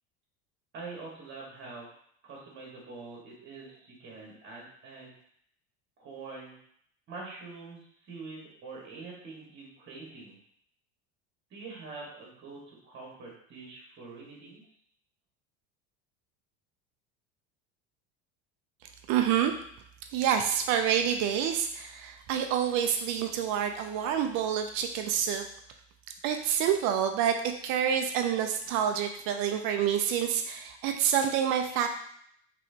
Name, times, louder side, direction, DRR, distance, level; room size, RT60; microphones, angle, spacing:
voice 1, 0.7-1.9 2.2-5.1 6.0-6.6 7.1-10.4 11.5-14.6, right 3 dB, 35° right, -3 dB, 1.5 m, -45 dB
voice 2, 19.1-19.5 20.1-25.4 26.2-27.4 27.6-31.9, right 9 dB, 60° right, 6 dB, 0.5 m, -27 dB
4.2 x 3.1 x 2.7 m, 0.67 s
cardioid pair, 140°, 33 cm